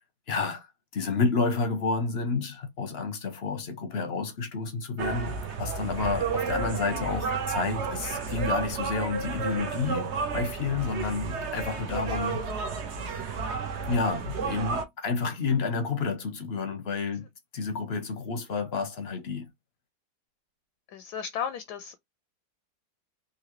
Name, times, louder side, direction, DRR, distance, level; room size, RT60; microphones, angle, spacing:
voice 1, 0.3-0.7 0.9-12.4 13.9-17.3 17.5-19.5, left 4 dB, 50° left, 0.7 m, -30 dB
sound 1, 5.0-14.8, right 5 dB, 55° right, 0.8 m, -32 dB
voice 2, 20.9-22.0, left 8 dB, 75° left, 1.0 m, -34 dB
3.8 x 2.7 x 2.9 m
omnidirectional pair, 1.9 m